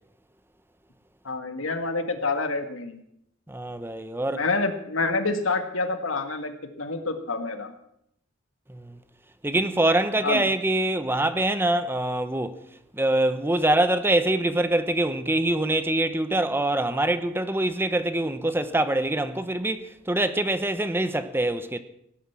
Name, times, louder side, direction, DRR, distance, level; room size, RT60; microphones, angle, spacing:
voice 1, 1.2-3.0 4.3-6.5 6.8-7.7 10.2-10.4, left 3 dB, 80° left, 2.0 m, -27 dB
voice 2, 3.5-4.4 8.7-9.0 9.4-12.6 12.9-21.8, right 1 dB, 10° right, 0.7 m, -24 dB
18.0 x 10.0 x 7.4 m
head